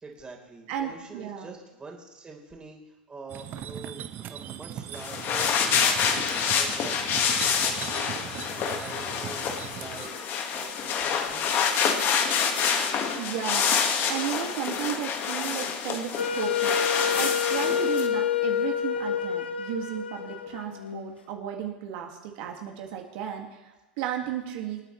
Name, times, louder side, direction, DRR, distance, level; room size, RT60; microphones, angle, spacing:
voice 1, 0.0-4.0 4.3-5.5 6.5-7.3 7.6-8.3 8.7-10.2 10.5-11.6, right 3 dB, 15° right, 0 dB, 3.9 m, -45 dB
voice 2, 0.7-1.5 13.2-13.7 14.1-24.8, right 10 dB, 55° right, 1 dB, 2.1 m, -34 dB
sound 1, 3.3-10.1, right 10 dB, 35° right, 1.0 m, -40 dB
sound 2, 4.9-18.1, left 6 dB, 40° left, 1.7 m, -27 dB
Wind instrument woodwind instrument, 16.2-21.1, left 7 dB, 85° left, 1.2 m, -28 dB
26.5 x 9.0 x 3.2 m, 1.1 s
hypercardioid pair, 100°, 6 cm